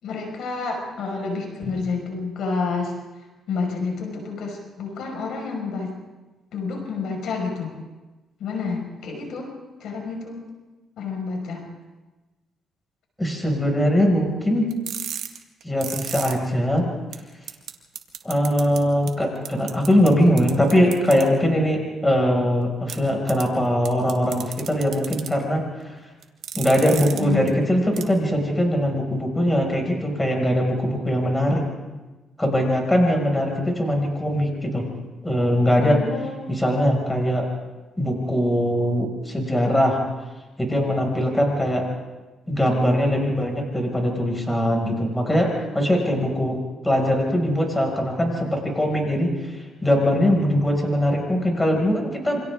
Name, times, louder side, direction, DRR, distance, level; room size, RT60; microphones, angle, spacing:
voice 1, 0.0-2.9 3.5-5.9 6.5-7.7 8.4-9.5 9.8-10.4 11.0-11.7 27.1-27.5 35.8-36.6, left 4 dB, 75° left, 2 dB, 5.5 m, -29 dB
voice 2, 13.2-14.7 15.6-16.8 18.2-25.6 26.5-31.6 32.4-34.9 35.2-36.0 36.5-37.5 38.0-40.0 40.6-41.9 42.5-46.6 46.8-52.4, equal, 10° left, 1 dB, 6.1 m, -21 dB
sound 1, 14.7-16.3 16.8-16.9 17.1-17.2 17.5-17.7 17.9-18.8 19.1-19.2 19.4-20.1 20.4-21.2 22.9-23.0 23.3-23.4 23.8-25.3 26.2-27.2 27.5-27.6 28.0-28.1, right 10 dB, 75° right, 1.8 m, -32 dB
28.0 x 26.0 x 3.8 m, 1.2 s
cardioid pair, 90°, 0 cm